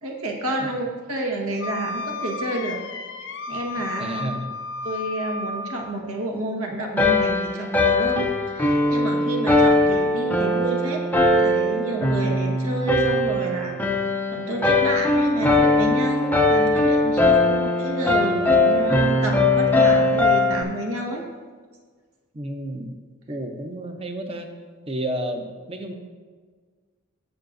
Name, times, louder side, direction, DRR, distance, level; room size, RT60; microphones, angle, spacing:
voice 1, 0.0-2.8 3.5-4.3 4.8-11.0 11.4-13.8 14.3-21.2, right 1 dB, 80° right, 1 dB, 1.5 m, -29 dB
Wind instrument woodwind instrument, 1.6-6.0, left 2 dB, 55° left, 0.5 m, -33 dB
voice 2, 4.0-4.5 22.3-22.9 23.3-24.5 24.9-25.9, right 1 dB, 25° right, 5 dB, 0.7 m, -31 dB
sound 1, 7.0-20.6, left 2 dB, 10° left, 0.5 m, -20 dB
15.5 x 5.7 x 2.6 m, 1.5 s
head